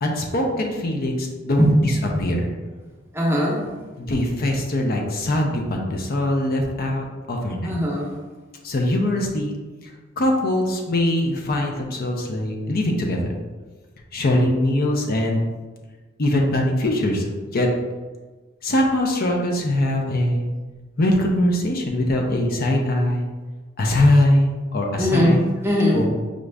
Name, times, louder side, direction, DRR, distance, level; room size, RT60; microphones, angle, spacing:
voice 1, 0.0-2.5 4.0-7.8 8.6-9.5 9.8-13.4 14.1-15.4 16.2-17.3 17.5-17.7 18.6-20.5 21.0-23.3 23.8-25.4 25.9-26.0, left 1 dB, 50° left, 1 dB, 0.6 m, -22 dB
voice 2, 3.1-3.6 7.6-8.1 25.0-26.0, equal, 10° right, -3 dB, 0.8 m, -20 dB
5.1 x 2.5 x 3.3 m, 1.3 s
head